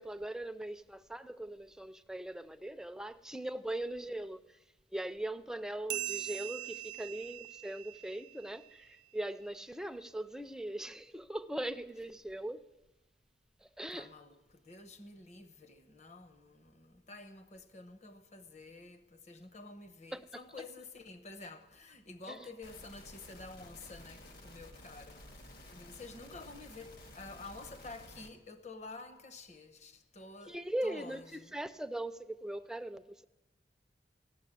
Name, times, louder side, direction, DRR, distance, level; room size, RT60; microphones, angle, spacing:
voice 1, 0.0-4.4 4.9-12.6 13.8-14.1 20.1-20.2 22.3-22.4 30.5-31.2 31.5-33.2, right 1 dB, 5° right, 0.4 m, -40 dB
sound 1, 5.9-8.9, right 15 dB, 85° right, 0.5 m, -42 dB
voice 2, 13.9-31.6, left 3 dB, 40° left, 1.1 m, -50 dB
sound 2, 22.6-28.3, left 1 dB, 60° left, 1.8 m, -53 dB
15.5 x 7.4 x 9.9 m
head